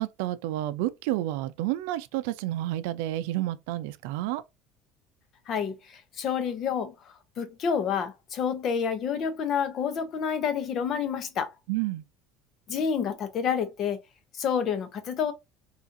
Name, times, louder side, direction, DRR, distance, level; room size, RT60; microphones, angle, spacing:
voice 1, 0.0-4.4 11.7-12.0, right 15 dB, 90° right, 0.4 m, -30 dB
voice 2, 5.5-6.9 7.4-11.5 12.7-14.0 14.3-15.3, left 7 dB, 35° left, 0.6 m, -28 dB
3.8 x 2.4 x 2.5 m
cardioid pair, 175°, 0 cm